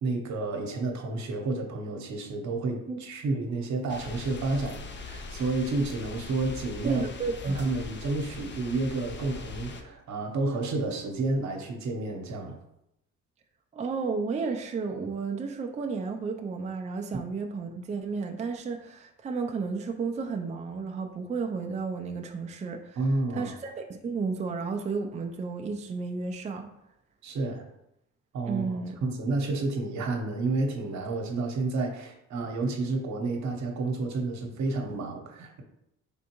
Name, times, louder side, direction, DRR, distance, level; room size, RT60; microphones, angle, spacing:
voice 1, 0.0-7.1 7.4-12.6 23.0-23.5 27.2-27.6 28.3-35.6, right 3 dB, 65° right, 2 dB, 0.9 m, -30 dB
sound 1, 3.9-9.8, left 3 dB, 40° left, 0.5 m, -41 dB
voice 2, 6.8-7.6 13.7-23.0 23.3-26.7 28.4-29.0, right 4 dB, 25° right, 3 dB, 0.4 m, -32 dB
4.2 x 3.5 x 2.9 m, 0.81 s
cardioid pair, 90°, 30 cm